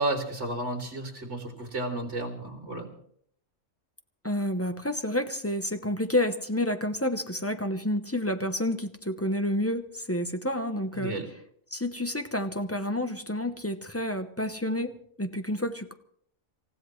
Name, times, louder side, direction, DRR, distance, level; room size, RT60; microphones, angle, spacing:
voice 1, 0.0-2.9 10.9-11.2, right 2 dB, 55° right, 2 dB, 3.4 m, -32 dB
voice 2, 4.2-11.2 11.7-15.9, left 1 dB, 15° left, 7 dB, 0.8 m, -29 dB
27.5 x 15.5 x 3.2 m, 0.64 s
omnidirectional pair, 1.4 m